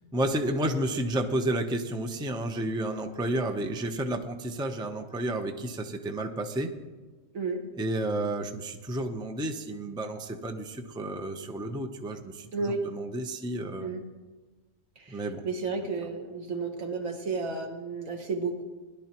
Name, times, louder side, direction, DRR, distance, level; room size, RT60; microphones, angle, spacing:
voice 1, 0.0-6.7 7.8-13.9 15.1-15.4, right 1 dB, 5° right, 5 dB, 0.5 m, -31 dB
voice 2, 12.5-12.8 13.8-14.0 15.0-18.6, right 4 dB, 75° right, 3 dB, 1.8 m, -32 dB
19.5 x 11.5 x 3.0 m, 1.3 s
omnidirectional pair, 1.4 m